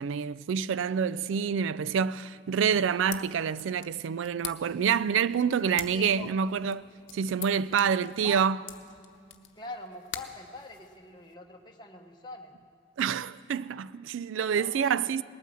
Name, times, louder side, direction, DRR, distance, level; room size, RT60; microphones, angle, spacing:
voice 1, 0.0-6.8 7.1-8.6 13.0-15.2, right 7 dB, 80° right, 0.3 m, -27 dB
sound 1, 2.8-11.3, left 10 dB, 80° left, 0.9 m, -46 dB
voice 2, 5.9-6.3 7.7-8.4 9.6-12.5 14.5-15.2, left 2 dB, 20° left, 1.0 m, -44 dB
19.5 x 9.1 x 7.5 m
head